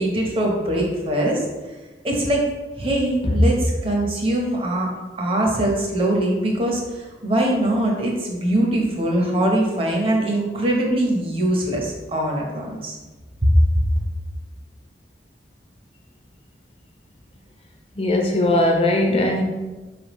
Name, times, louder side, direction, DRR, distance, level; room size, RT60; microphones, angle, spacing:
voice 1, 0.0-1.4 2.0-2.4 2.8-4.9 5.2-13.0 13.4-13.5, right 1 dB, 30° right, 0 dB, 0.8 m, -22 dB
voice 2, 18.0-19.4, left 1 dB, 35° left, 2 dB, 0.6 m, -19 dB
4.6 x 3.3 x 3.0 m, 1.2 s
head